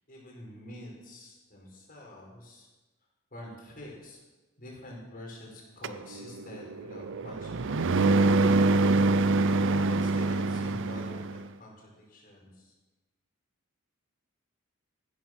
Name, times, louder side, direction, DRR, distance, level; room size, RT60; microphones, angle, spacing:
voice 1, 0.1-2.7 3.3-4.2 4.6-7.8 9.7-12.7, left 1 dB, 45° left, -1 dB, 5.2 m, -45 dB
sound 1, 5.8-11.4, right 3 dB, 60° right, 0.6 m, -25 dB
15.0 x 13.0 x 6.2 m, 1.1 s
head